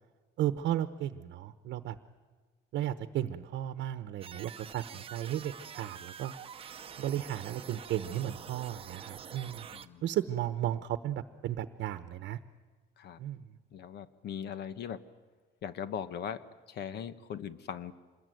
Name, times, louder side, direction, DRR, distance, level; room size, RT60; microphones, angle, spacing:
voice 1, 0.4-2.0 2.7-6.3 7.0-9.7 10.0-12.4 13.2-13.6, right 12 dB, 65° right, 10 dB, 1.0 m, -34 dB
sound 1, 4.2-9.9, right 7 dB, 30° right, 0.8 m, -46 dB
voice 2, 9.7-10.0 13.0-13.2 13.7-15.1 15.6-17.9, left 8 dB, 60° left, 13 dB, 1.2 m, -40 dB
26.5 x 20.5 x 9.2 m, 1.3 s
cardioid pair, 165°, 19 cm